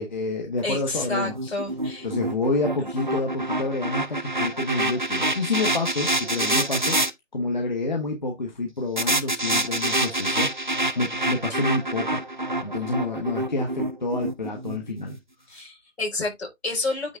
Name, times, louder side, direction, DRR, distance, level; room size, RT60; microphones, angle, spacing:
voice 1, 0.0-1.5 2.0-7.0 7.3-12.2 12.6-15.2, left 2 dB, 35° left, 1.3 m, -28 dB
voice 2, 0.6-2.1 15.5-17.2, left 2 dB, 55° left, 5.0 m, -29 dB
sound 1, 0.9-7.1 9.0-15.2, right 2 dB, 40° right, 0.5 m, -27 dB
9.4 x 3.7 x 3.6 m
hypercardioid pair, 175°, 38 cm